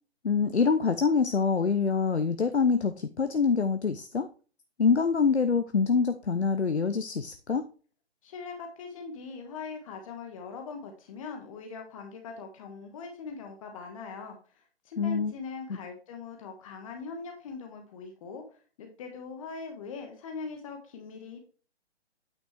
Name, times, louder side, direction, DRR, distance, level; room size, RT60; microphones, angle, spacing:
voice 1, 0.2-4.3 4.8-7.7 15.0-15.3 15.7-15.8, left 5 dB, 80° left, 9 dB, 0.8 m, -25 dB
voice 2, 8.2-18.4 18.8-21.4, left 4 dB, 30° left, 3 dB, 1.4 m, -41 dB
9.0 x 6.0 x 3.3 m, 0.38 s
figure-of-eight pair, 135°, 33 cm